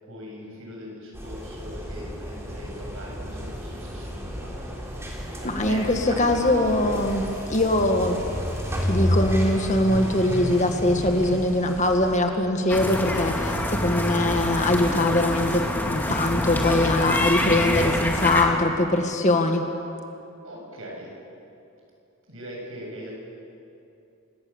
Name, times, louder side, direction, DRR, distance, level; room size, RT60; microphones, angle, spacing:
voice 1, 0.0-4.5 5.4-6.7 20.4-21.1 22.3-23.1, equal, 65° right, -2 dB, 7.9 m, -40 dB
sound 1, 1.1-12.2, equal, 10° right, 3.3 m, -31 dB
voice 2, 5.4-8.2 8.9-19.6, left 1 dB, 35° left, 4 dB, 1.6 m, -22 dB
sound 2, 12.7-18.4, left 1 dB, 10° left, 2.0 m, -26 dB
28.5 x 18.0 x 7.3 m, 2.7 s
head